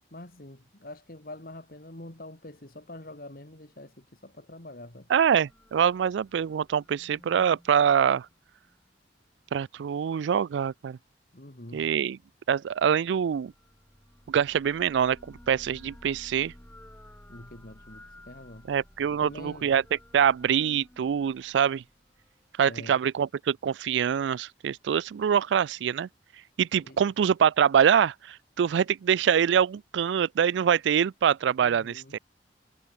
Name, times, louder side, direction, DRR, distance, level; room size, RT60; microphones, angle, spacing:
voice 1, 0.1-5.1 11.3-11.9 17.3-18.7 19.1-19.7 22.6-23.0 26.8-27.0 31.6-32.2, left 1 dB, 55° left, 2.8 m, -45 dB
voice 2, 5.1-8.3 9.5-11.0 11.7-12.2 12.5-13.5 14.3-15.2 15.5-16.5 18.7-19.8 20.1-21.8 22.6-26.1 26.6-32.2, right 8 dB, 90° right, 0.3 m, -24 dB
sound 1, 5.2-8.8 13.1-22.3, left 1 dB, 10° left, 3.8 m, -54 dB
head